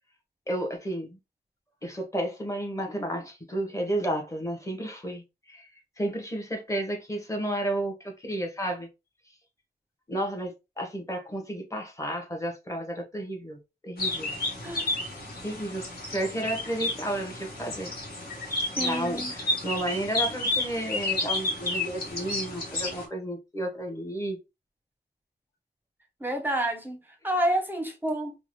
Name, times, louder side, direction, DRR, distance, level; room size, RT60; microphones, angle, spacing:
voice 1, 0.5-1.2 1.8-5.7 6.0-8.9 10.1-14.3 15.4-15.8 16.1-17.9 18.8-24.4, right 1 dB, 15° left, 1.1 m, -32 dB
sound 1, 14.0-23.0, left 2 dB, 60° left, 1.3 m, -31 dB
voice 2, 18.8-19.3 26.2-28.4, right 1 dB, 10° right, 0.8 m, -29 dB
3.7 x 2.2 x 3.1 m
wide cardioid pair, 75°, 18 cm